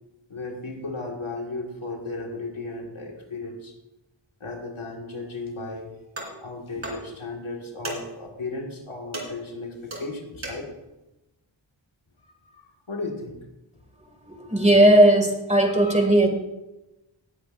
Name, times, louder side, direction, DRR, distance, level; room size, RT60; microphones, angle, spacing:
voice 1, 0.3-3.7 4.4-5.9 6.4-10.7 12.2-13.4, left 3 dB, 85° left, 1 dB, 1.9 m, -35 dB
sound 1, 6.2-6.5 6.8-7.2 7.8-8.2 9.1-10.8, right 1 dB, 75° right, 2.9 m, -36 dB
voice 2, 14.3-16.3, right 1 dB, 15° right, 4 dB, 2.1 m, -17 dB
17.5 x 9.6 x 2.5 m, 0.99 s
wide cardioid pair, 50°, 47 cm